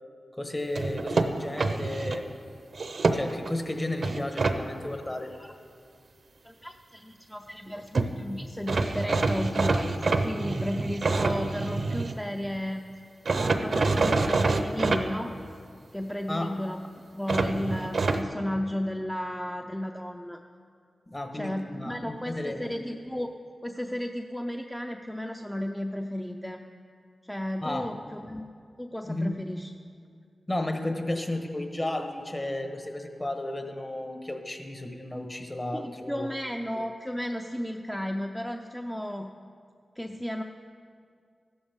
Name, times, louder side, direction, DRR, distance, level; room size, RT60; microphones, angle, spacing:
voice 1, 0.4-2.3 3.1-5.3 16.3-16.5 21.1-22.7 27.6-27.9 29.0-29.4 30.5-36.3, left 1 dB, 25° left, 5 dB, 1.3 m, -33 dB
sound 1, 0.8-2.2 2.7-3.5 4.0-4.6 7.7-7.8 7.9-8.1 8.7-12.2 13.3-15.0 17.3-18.2, right 3 dB, 65° right, 0.7 m, -26 dB
voice 2, 6.4-12.9 13.3-15.3 15.9-16.8 17.1-20.4 21.3-23.3 23.6-26.6 27.3-28.4 28.8-29.7 35.7-39.3 40.0-40.4, left 1 dB, 5° left, 3 dB, 0.6 m, -34 dB
14.5 x 11.5 x 3.6 m, 2.3 s
cardioid pair, 55°, 0 cm